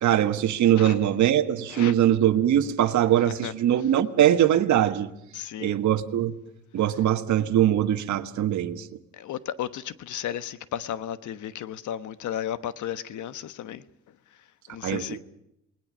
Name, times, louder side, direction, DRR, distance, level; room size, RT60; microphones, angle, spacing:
voice 1, 0.0-5.1 5.6-6.3 6.7-8.9 14.8-15.2, right 11 dB, 70° right, 1.5 m, -22 dB
voice 2, 5.3-5.8 9.1-13.8 14.7-15.2, left 10 dB, 75° left, 1.2 m, -34 dB
28.5 x 20.0 x 6.2 m
cardioid pair, 90°, 30 cm